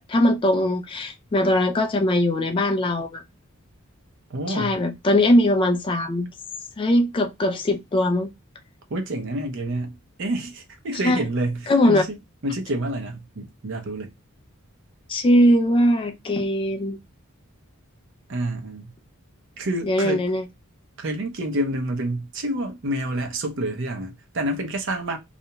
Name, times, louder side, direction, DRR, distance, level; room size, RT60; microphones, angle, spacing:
voice 1, 0.1-3.2 4.5-6.3 6.8-8.3 11.0-11.2 11.7-12.0 15.1-17.0 19.9-20.4, left 1 dB, 25° left, 0.3 m, -20 dB
voice 2, 4.3-4.8 8.9-12.2 12.4-14.1 18.3-18.9 19.6-20.3 21.0-25.2, right 1 dB, 60° right, 0.6 m, -28 dB
2.4 x 2.1 x 2.8 m
head